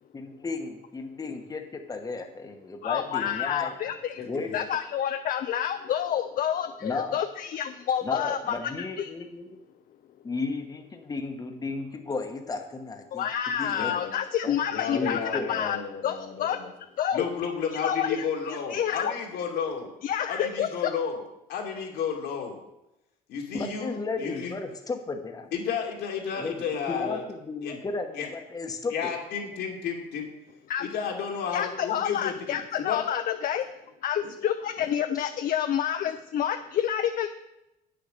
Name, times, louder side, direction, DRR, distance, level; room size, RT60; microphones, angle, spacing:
voice 1, 0.1-3.7 4.3-4.5 6.8-7.2 8.0-9.5 10.2-13.3 13.6-13.9 14.4-14.6 14.9-15.6 23.5-25.5 26.3-26.5 26.9-29.1, left 3 dB, 20° left, 4 dB, 1.1 m, -34 dB
voice 2, 2.8-4.2 4.5-9.1 13.1-15.8 16.0-16.6 17.0-17.2 17.8-19.1 20.0-20.9 30.7-30.9 31.5-33.7 34.0-37.3, left 9 dB, 55° left, 8 dB, 0.6 m, -28 dB
voice 3, 4.2-4.6 13.6-14.1 14.7-16.7 17.1-19.9 20.3-21.2 21.5-22.6 23.3-24.6 25.5-27.3 27.6-27.8 28.1-28.3 28.9-30.3 30.8-33.0 34.2-34.3 34.8-34.9, left 6 dB, 80° left, 0 dB, 2.4 m, -32 dB
8.6 x 6.8 x 6.5 m, 0.90 s
cardioid pair, 110°, 17 cm